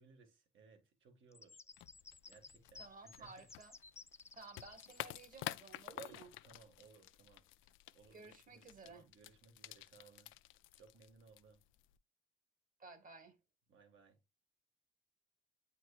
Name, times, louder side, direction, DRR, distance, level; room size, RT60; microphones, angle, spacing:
voice 1, 0.0-1.6 2.3-3.5 5.9-7.4 7.9-10.3 10.8-11.6 13.7-14.2, right 4 dB, 75° right, 2.0 m, -64 dB
sound 1, 1.3-5.0, left 3 dB, 15° left, 0.3 m, -57 dB
sound 2, 1.7-12.0, left 15 dB, 90° left, 0.4 m, -51 dB
voice 2, 2.8-3.7 4.3-6.3 8.1-9.0 12.8-13.4, right 4 dB, 45° right, 1.5 m, -55 dB
8.5 x 4.6 x 2.4 m
cardioid pair, 90°, 20 cm